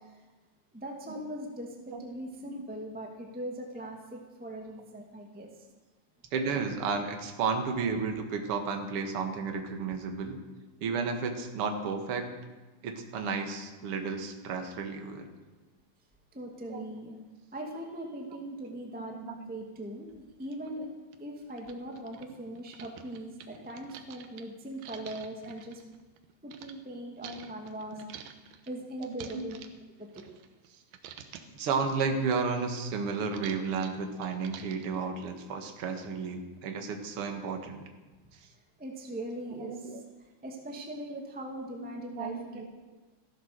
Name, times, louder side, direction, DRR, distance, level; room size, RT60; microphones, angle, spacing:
voice 1, 0.7-5.5 16.3-17.2 17.5-19.2 19.5-20.9 21.2-25.8 26.4-28.4 28.7-29.6 30.0-30.2 38.8-40.0 40.4-42.6, right 1 dB, 5° right, 1 dB, 1.2 m, -40 dB
voice 2, 6.3-10.4 10.8-12.3 12.8-15.3 16.7-16.8 19.1-19.5 27.2-27.5 27.9-28.0 29.0-29.4 31.5-37.8 38.3-38.4 39.6-40.0 41.8-42.7, right 5 dB, 50° right, 5 dB, 2.2 m, -33 dB
sound 1, 20.4-20.5 21.1-21.2 21.5-26.7 27.2-30.7 30.9-31.6 32.0-35.0, right 9 dB, 85° right, 2.7 m, -49 dB
15.5 x 12.5 x 6.8 m, 1.2 s
omnidirectional pair, 3.8 m